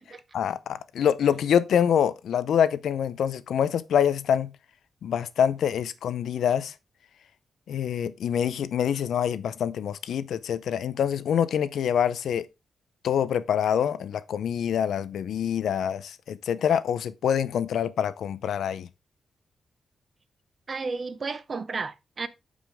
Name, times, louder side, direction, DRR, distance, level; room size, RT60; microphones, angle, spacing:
voice 1, 0.3-4.5 5.0-6.7 7.7-12.5 13.0-18.9, left 8 dB, 85° left, 0.6 m, -25 dB
voice 2, 20.7-22.3, right 4 dB, 35° right, 0.7 m, -32 dB
9.1 x 5.0 x 3.5 m
wide cardioid pair, 145°, 0 cm